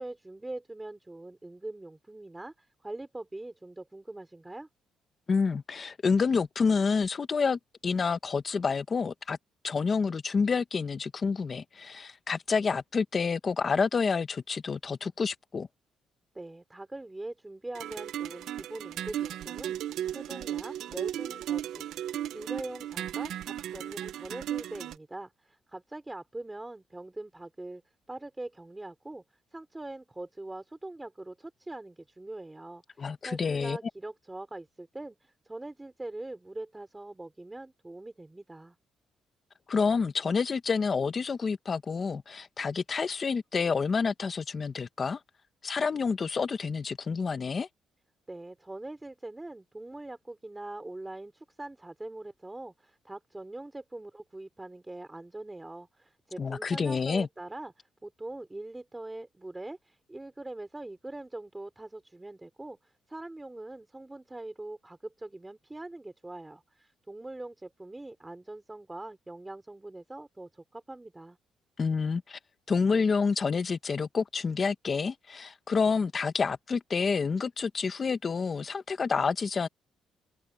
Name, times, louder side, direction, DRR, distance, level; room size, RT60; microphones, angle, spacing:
voice 1, 0.0-4.7 16.3-27.8 28.1-29.2 29.5-38.8 48.3-71.4, right 2 dB, 10° right, 3.1 m, -43 dB
voice 2, 5.3-9.4 9.6-15.7 33.0-33.8 39.7-45.2 45.6-47.7 56.4-57.3 71.8-72.4 72.7-79.7, left 5 dB, 30° left, 1.2 m, -28 dB
sound 1, 17.7-25.0, right 11 dB, 75° right, 0.7 m, -35 dB
cardioid pair, 145°, 0 cm